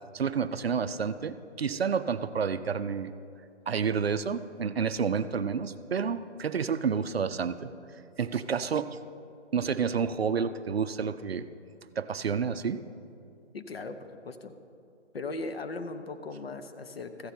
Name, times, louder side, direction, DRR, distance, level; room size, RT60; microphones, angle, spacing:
voice 1, 0.1-3.1 3.7-7.7 8.2-9.0 9.5-11.5 12.0-12.8, right 6 dB, 60° right, 12 dB, 0.5 m, -29 dB
voice 2, 13.5-14.6 15.1-17.3, left 3 dB, 55° left, 9 dB, 0.8 m, -38 dB
14.5 x 7.9 x 4.3 m, 2.5 s
hypercardioid pair, 170°, 35 cm